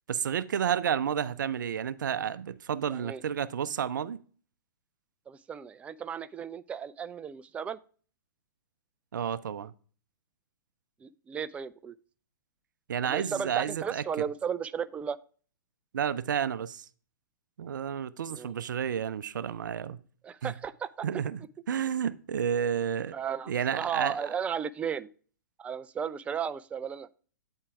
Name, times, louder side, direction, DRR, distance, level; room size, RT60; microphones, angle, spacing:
voice 1, 0.1-4.2 9.1-9.7 12.9-14.0 15.9-16.9 17.6-20.0 20.4-20.5 21.0-21.4 21.7-23.1 23.5-24.2, right 8 dB, 70° right, 0.5 m, -31 dB
voice 2, 2.9-3.2 5.3-7.8 11.0-11.9 13.0-15.2 18.3-18.5 20.2-21.1 23.1-25.1 25.6-27.1, right 7 dB, 10° right, 0.3 m, -35 dB
8.7 x 4.5 x 4.6 m
hypercardioid pair, 120°, 11 cm